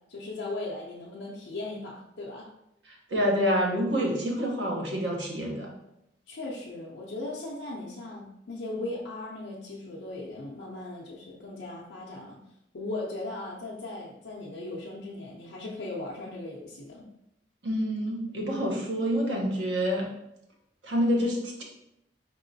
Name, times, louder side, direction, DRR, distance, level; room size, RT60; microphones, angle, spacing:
voice 1, 0.1-2.5 6.3-12.4 12.7-17.1, left 2 dB, 70° left, -4 dB, 0.6 m, -38 dB
voice 2, 2.9-5.7 17.6-20.1 20.8-21.6, equal, 75° right, 0 dB, 0.9 m, -27 dB
4.6 x 2.9 x 2.7 m, 0.83 s
head